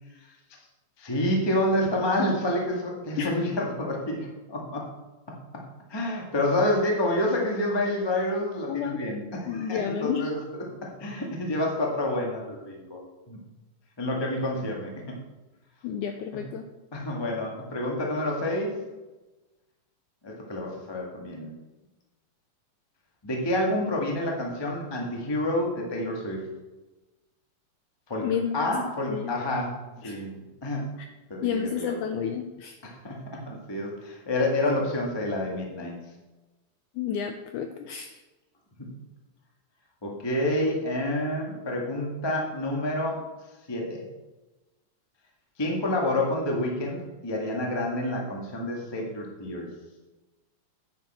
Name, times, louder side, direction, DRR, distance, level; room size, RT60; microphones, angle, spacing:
voice 1, 1.0-4.9 5.9-10.4 10.8-13.0 13.3-13.4 14.0-15.1 16.9-18.8 20.2-21.6 23.2-26.4 28.1-28.3 28.5-29.7 30.0-30.3 30.6-30.9 31.3-32.1 32.8-35.9 38.8-38.9 40.0-43.2 43.7-44.0 45.6-49.7, left 1 dB, 40° left, -1 dB, 0.3 m, -28 dB
voice 2, 8.7-9.0 9.5-10.3 15.8-16.7 28.2-28.6 29.1-29.4 30.0-30.2 31.0-31.1 31.4-32.7 37.0-38.2, left 8 dB, 85° left, 6 dB, 1.8 m, -30 dB
9.8 x 8.5 x 4.3 m, 1.1 s
omnidirectional pair, 4.2 m